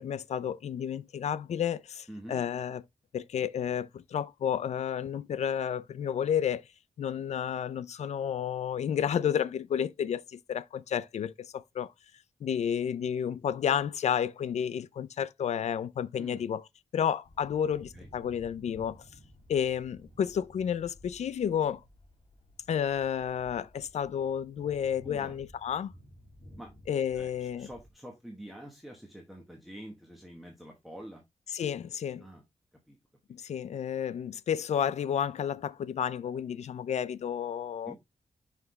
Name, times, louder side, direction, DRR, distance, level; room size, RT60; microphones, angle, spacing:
voice 1, 0.0-2.8 3.1-6.6 7.0-11.9 12.4-16.6 16.9-19.0 19.5-21.8 22.7-25.9 26.9-27.7 31.5-32.2 33.3-38.0, left 8 dB, 65° left, 0.4 m, -31 dB
voice 2, 2.1-2.4 16.2-16.5 17.9-18.1 25.0-25.4 26.6-26.7 27.1-31.2 32.2-32.4 32.9-33.0 37.9-38.0, equal, ahead, 1.1 m, -46 dB
sound 1, 17.2-27.9, equal, 50° left, 2.3 m, -55 dB
5.8 x 5.8 x 3.0 m
wide cardioid pair, 175°, 12 cm